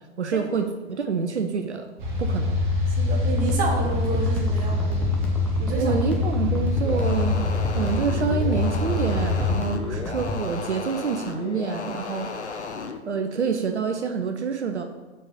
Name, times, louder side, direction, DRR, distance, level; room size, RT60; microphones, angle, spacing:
voice 1, 0.2-1.9 2.2-2.6 5.8-12.7 13.1-14.8, right 6 dB, 80° right, 5 dB, 0.6 m, -27 dB
sound 1, 2.0-9.5, left 2 dB, 45° right, 1.4 m, -25 dB
voice 2, 3.0-5.1 5.6-5.9, right 3 dB, 25° right, -1 dB, 1.4 m, -29 dB
sound 2, 3.4-10.4, left 3 dB, 5° left, 0.6 m, -32 dB
sound 3, 6.8-13.0, left 5 dB, 75° left, 0.7 m, -34 dB
4.7 x 4.4 x 5.5 m, 1.2 s
figure-of-eight pair, 105°, 34 cm